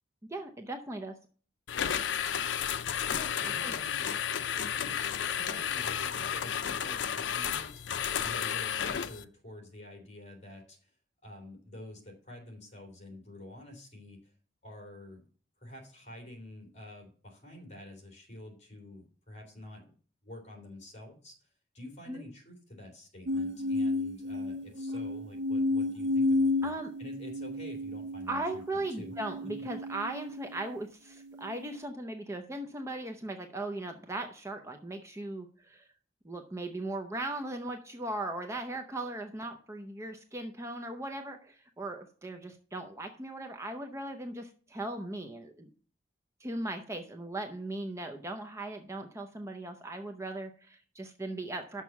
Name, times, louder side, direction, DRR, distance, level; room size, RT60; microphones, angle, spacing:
voice 1, 0.3-1.2 3.1-3.3 3.6-3.7 22.1-22.2 26.6-26.9 28.3-35.8 36.2-45.7 46.4-51.8, right 2 dB, 15° right, 4 dB, 0.6 m, -38 dB
sound 1, 1.7-9.2, left 8 dB, 75° left, 0.5 m, -32 dB
voice 2, 3.0-4.1 4.7-10.9 11.2-14.3 14.6-15.2 15.6-19.9 20.2-21.3 21.7-29.2 29.4-29.7, left 1 dB, 40° left, 2 dB, 2.9 m, -48 dB
sound 2, 23.3-30.7 31.3-31.8, left 2 dB, 70° right, 0.5 m, -32 dB
6.3 x 5.9 x 7.0 m, 0.42 s
head